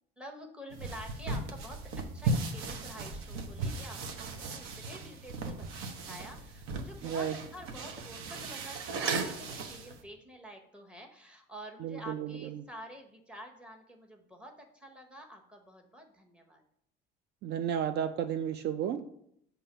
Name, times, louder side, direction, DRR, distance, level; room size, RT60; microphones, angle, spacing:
voice 1, 0.2-1.8 2.1-5.7 6.1-16.6, equal, 5° right, 2 dB, 1.0 m, -48 dB
sound 1, 0.7-10.0, right 3 dB, 80° right, 0.9 m, -37 dB
voice 2, 7.0-7.3 11.8-12.6 17.4-19.0, right 9 dB, 55° right, 9 dB, 0.4 m, -33 dB
7.2 x 3.0 x 5.5 m, 0.71 s
cardioid pair, 130°, 21 cm